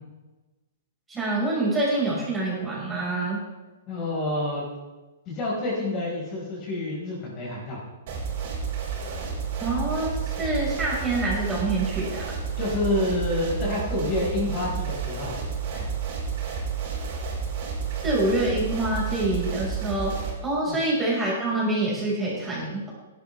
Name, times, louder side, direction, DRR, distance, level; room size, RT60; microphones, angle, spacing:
voice 1, 1.1-3.4 9.6-12.4 18.0-20.1 20.4-22.9, right 2 dB, 15° right, -5 dB, 5.5 m, -26 dB
voice 2, 3.9-4.6 5.3-7.8 12.6-15.4 15.7-15.9 20.7-20.8, left 2 dB, 30° left, -4 dB, 5.2 m, -28 dB
sound 1, 8.1-20.3, right 6 dB, 50° right, 4.6 m, -31 dB
17.0 x 11.5 x 3.5 m, 1.2 s
figure-of-eight pair, 115°, 0 cm